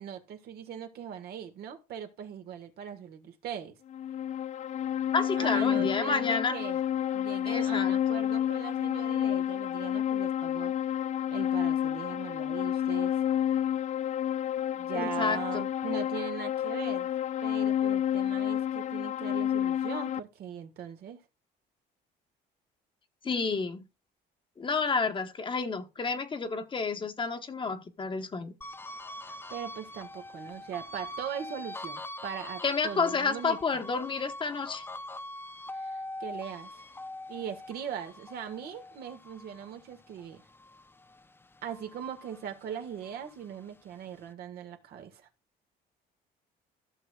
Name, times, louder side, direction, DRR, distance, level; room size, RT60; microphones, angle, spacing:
voice 1, 0.0-3.8 5.4-6.8 7.1-10.7 11.3-13.1 14.7-17.1 17.4-21.2 29.2-33.6 35.7-36.9 37.3-40.4 41.6-45.3, right 8 dB, 70° right, 1.7 m, -40 dB
sound 1, 3.9-20.2, left 10 dB, 45° left, 0.4 m, -30 dB
voice 2, 5.1-6.6 7.5-8.3 14.9-15.7 23.2-23.9 24.6-28.5 32.6-34.8, left 4 dB, 30° left, 1.2 m, -30 dB
sound 2, 28.6-41.2 41.6-43.3, left 1 dB, 15° left, 0.7 m, -43 dB
14.5 x 6.6 x 2.4 m
cardioid pair, 110°, 17 cm